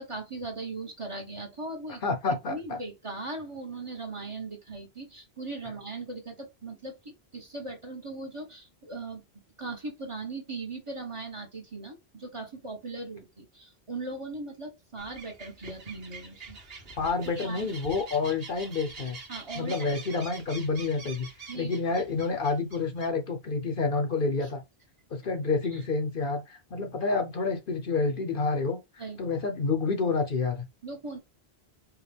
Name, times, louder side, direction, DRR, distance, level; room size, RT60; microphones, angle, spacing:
voice 1, 0.0-2.0 2.5-9.2 9.6-16.6 17.2-17.7 19.3-19.9 21.5-21.7 24.4-24.5 25.7-25.8 29.0-29.2 30.8-31.2, right 3 dB, 30° right, 1.2 m, -39 dB
voice 2, 2.0-2.8 17.0-19.2 19.6-21.3 21.5-24.6 25.1-28.8 29.2-30.7, left 4 dB, 55° left, 0.9 m, -28 dB
sound 1, 15.0-23.1, right 4 dB, 65° right, 1.5 m, -45 dB
4.7 x 2.4 x 3.3 m
omnidirectional pair, 1.1 m